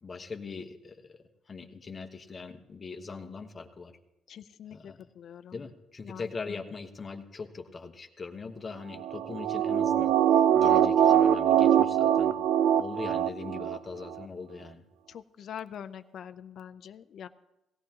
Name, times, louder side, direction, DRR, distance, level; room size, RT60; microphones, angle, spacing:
voice 1, 0.0-1.2 1.5-4.0 4.7-5.0 5.5-12.4 12.8-14.8, left 4 dB, 30° left, 5 dB, 1.1 m, -41 dB
voice 2, 4.3-5.6 6.0-6.2 15.1-17.3, left 9 dB, 55° left, 10 dB, 0.5 m, -44 dB
sound 1, 9.0-13.8 14.1-14.2, right 10 dB, 85° right, 0.4 m, -23 dB
18.0 x 16.5 x 2.9 m, 0.91 s
cardioid pair, 130°, 0 cm